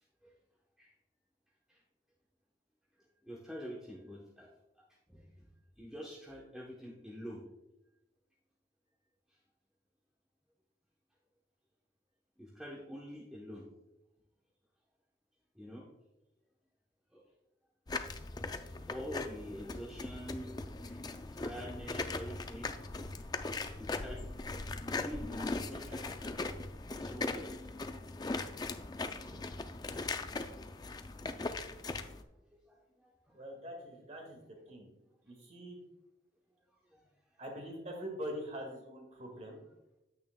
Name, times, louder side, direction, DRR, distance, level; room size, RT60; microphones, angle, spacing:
voice 1, 3.2-4.5 5.1-5.5 5.8-7.4 12.4-13.7 15.5-15.9 17.1-17.2 18.9-21.0 21.3-22.7 23.7-24.3 24.9-27.7 29.1-29.6 31.9-32.2 32.5-33.4 36.8-37.1, equal, 5° right, -5 dB, 0.9 m, -47 dB
sound 1, 17.9-32.2, left 3 dB, 20° left, 0.4 m, -39 dB
voice 2, 33.3-34.4 34.7-34.9 35.2-35.8 37.4-39.6, equal, 40° right, 2 dB, 1.8 m, -43 dB
9.1 x 8.8 x 2.2 m, 0.95 s
head